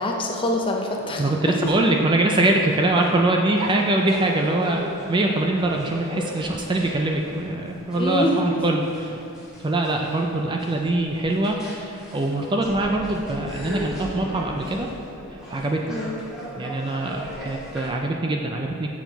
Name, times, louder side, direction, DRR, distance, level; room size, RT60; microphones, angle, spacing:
voice 1, 0.0-1.3 7.9-8.4 15.9-16.2, left 1 dB, 25° left, 1 dB, 0.6 m, -25 dB
sound 1, 0.9-17.9, equal, 5° right, 1.9 m, -38 dB
voice 2, 1.2-9.2 9.6-14.9 15.5-15.8 16.6-18.9, right 2 dB, 20° right, 2 dB, 0.4 m, -23 dB
7.1 x 5.7 x 4.6 m, 2.7 s
head